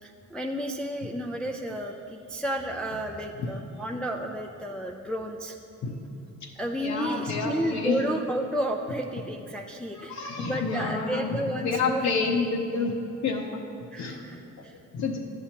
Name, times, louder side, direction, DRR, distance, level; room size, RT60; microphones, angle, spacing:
voice 1, 0.0-5.6 6.6-12.1 13.9-14.8, right 1 dB, 5° left, 1 dB, 0.3 m, -32 dB
voice 2, 6.8-8.0 9.9-12.9 13.2-13.6 14.0-14.3 14.6-14.7 14.9-15.2, left 4 dB, 65° left, 0 dB, 0.8 m, -29 dB
10.5 x 6.9 x 2.9 m, 2.9 s
cardioid pair, 90°, 30 cm